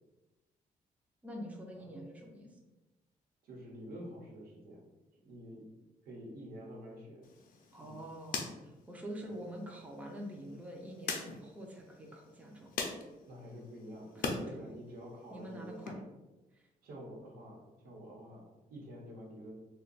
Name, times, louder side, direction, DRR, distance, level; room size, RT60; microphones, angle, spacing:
voice 1, 1.2-2.6 7.7-12.7 14.1-14.7 15.3-16.0 16.5-16.7, equal, 10° right, 0 dB, 0.4 m, -46 dB
voice 2, 3.4-4.8 5.2-5.7 6.0-7.2 7.8-8.1 9.2-9.4 13.2-16.0 16.8-19.5, equal, 85° right, -2 dB, 1.0 m, -48 dB
sound 1, 7.2-14.4 14.8-15.9, left 4 dB, 70° left, 0.5 m, -43 dB
2.7 x 2.2 x 3.9 m, 1.1 s
cardioid pair, 140°, 15 cm